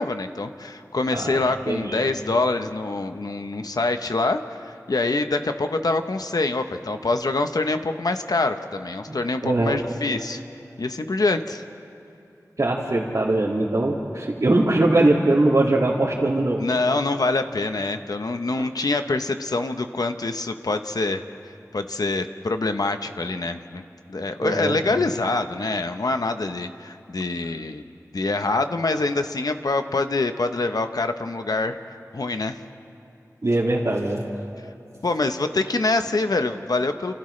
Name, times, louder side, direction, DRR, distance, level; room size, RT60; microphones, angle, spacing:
voice 1, 0.0-10.4 10.8-11.6 16.6-21.2 21.7-23.8 24.1-27.8 28.1-31.8 32.1-32.6 35.0-37.1, left 3 dB, 80° left, 8 dB, 0.9 m, -25 dB
voice 2, 1.1-2.0 9.1-9.8 12.6-16.7 18.6-18.7 24.4-24.8 33.4-34.2 34.6-34.7, right 2 dB, 60° right, -6 dB, 2.4 m, -22 dB
29.5 x 28.5 x 3.3 m, 2.7 s
wide cardioid pair, 60°, 6 cm